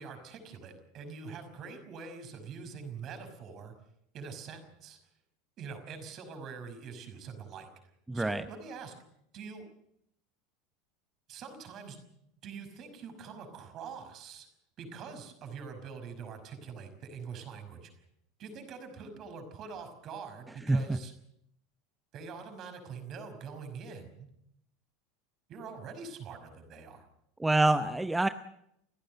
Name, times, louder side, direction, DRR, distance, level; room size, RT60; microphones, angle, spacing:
voice 1, 0.0-3.7 4.1-5.0 5.6-7.7 8.1-8.9 9.3-9.6 11.3-12.0 12.4-14.5 14.8-17.9 18.4-21.1 22.1-24.3 25.5-27.1, right 5 dB, 40° right, 7 dB, 5.7 m, -44 dB
voice 2, 8.1-8.4 20.7-21.0 27.4-28.3, right 2 dB, 10° right, 11 dB, 0.8 m, -26 dB
30.0 x 16.0 x 6.7 m, 0.76 s
figure-of-eight pair, 75°, 0 cm